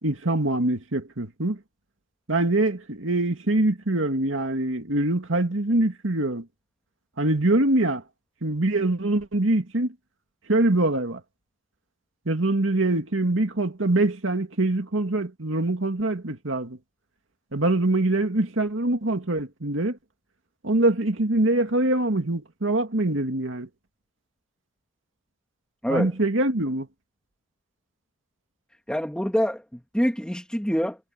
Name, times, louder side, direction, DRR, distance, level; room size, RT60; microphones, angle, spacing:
voice 1, 0.0-1.6 2.3-6.5 7.2-8.0 8.4-9.9 10.5-11.2 12.3-16.8 17.5-20.0 20.6-23.7 25.9-26.9, right 2 dB, 90° right, 2.3 m, -24 dB
voice 2, 28.9-31.0, equal, 5° left, 2.4 m, -25 dB
head